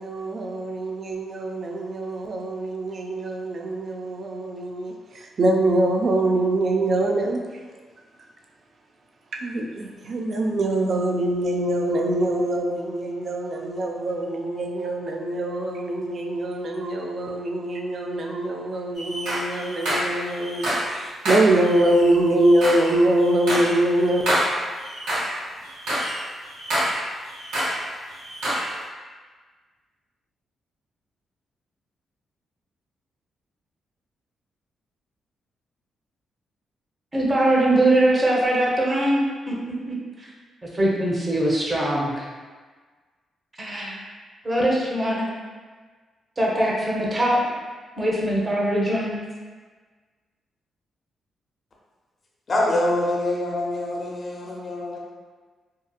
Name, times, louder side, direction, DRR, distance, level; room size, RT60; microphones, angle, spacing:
voice 1, 0.0-7.4 9.3-24.2, right 1 dB, 55° right, 1 dB, 0.4 m, -24 dB
sound 1, 18.9-21.0 21.2-25.4 25.6-27.8 28.1-28.7, equal, 90° right, 1.1 m, -27 dB
voice 2, 37.1-39.5 39.9-40.3 40.7-42.3 43.6-44.0 44.4-45.2 46.4-47.4 48.0-49.2, right 1 dB, 35° right, -4 dB, 0.8 m, -22 dB
voice 3, 52.5-55.0, left 1 dB, 50° left, -3 dB, 0.6 m, -25 dB
2.7 x 2.4 x 2.3 m, 1.4 s
supercardioid pair, 50°, 0 cm